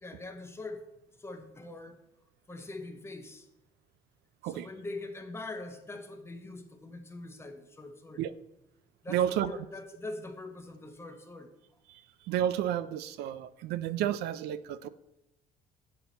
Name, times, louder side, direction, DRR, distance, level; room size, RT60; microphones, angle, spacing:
voice 1, 0.0-0.9 1.2-2.0 2.5-3.5 4.4-8.2 9.0-11.5, left 2 dB, 15° left, 5 dB, 0.9 m, -43 dB
voice 2, 9.1-9.5 11.9-14.9, right 11 dB, 85° right, 15 dB, 0.4 m, -31 dB
7.8 x 5.8 x 4.0 m, 0.87 s
cardioid pair, 110°, 17 cm